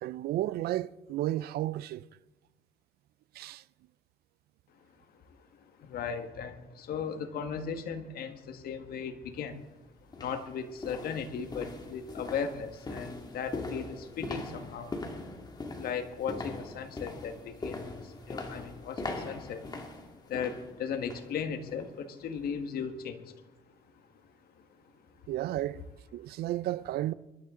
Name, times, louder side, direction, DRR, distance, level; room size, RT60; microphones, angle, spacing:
voice 1, 0.0-2.1 3.3-3.6 25.3-25.8 26.1-27.1, right 14 dB, 70° right, 0.5 m, -32 dB
voice 2, 5.2-9.6 10.1-14.9 15.3-15.4 15.7-23.5 23.9-24.3 24.7-24.8 25.2-25.3, left 6 dB, 65° left, 1.6 m, -37 dB
sound 1, 9.4-9.5 10.1-21.3 21.7-21.9 22.4-22.5, left 2 dB, 25° left, 2.2 m, -41 dB
22.0 x 12.5 x 3.8 m
cardioid pair, 110°, 17 cm